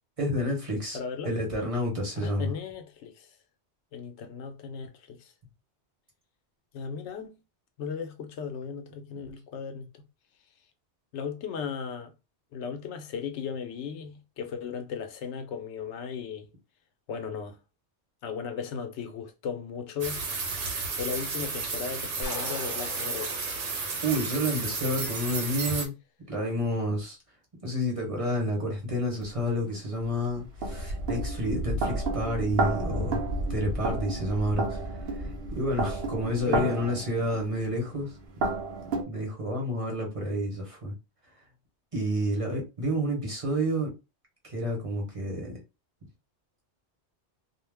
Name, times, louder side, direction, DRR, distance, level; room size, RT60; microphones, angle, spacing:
voice 1, 0.2-1.0 1.2-2.5 23.8-25.9 26.3-27.2 27.6-34.8 35.2-38.1 39.1-40.9 41.9-43.9 44.4-45.6, equal, 35° right, 0.9 m, -30 dB
voice 2, 0.9-1.3 2.2-3.3 3.9-5.3 6.7-7.4 7.8-9.9 11.1-12.1 12.5-16.5 17.1-17.6 18.2-20.5 21.0-23.3 36.5-36.7, left 6 dB, 85° left, 0.9 m, -36 dB
sound 1, 20.0-25.9, right 4 dB, 85° right, 1.0 m, -32 dB
sound 2, 22.2-25.0, left 4 dB, 55° left, 0.8 m, -42 dB
sound 3, 29.2-29.3 30.0-39.0, right 2 dB, 65° right, 0.8 m, -31 dB
2.4 x 2.1 x 3.3 m
omnidirectional pair, 1.1 m